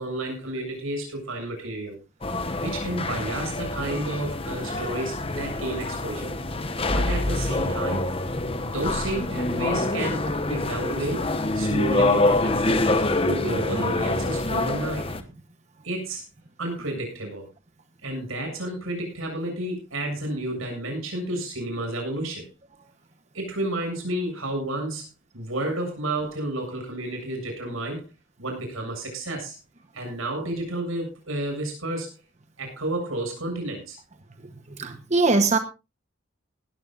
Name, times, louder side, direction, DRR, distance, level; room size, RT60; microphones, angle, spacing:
voice 1, 0.0-2.0 2.6-6.3 6.9-8.1 8.6-11.3 11.5-15.1 15.8-16.2 16.6-17.5 18.0-22.5 23.3-28.0 28.4-29.6 29.9-32.1 32.6-34.0, right 1 dB, 85° right, 3 dB, 7.5 m, -31 dB
sound 1, 2.2-15.2, left 2 dB, 25° left, 1.1 m, -26 dB
voice 2, 34.8-35.6, right 3 dB, 35° right, 8 dB, 1.0 m, -21 dB
18.5 x 14.5 x 2.5 m, 0.28 s
head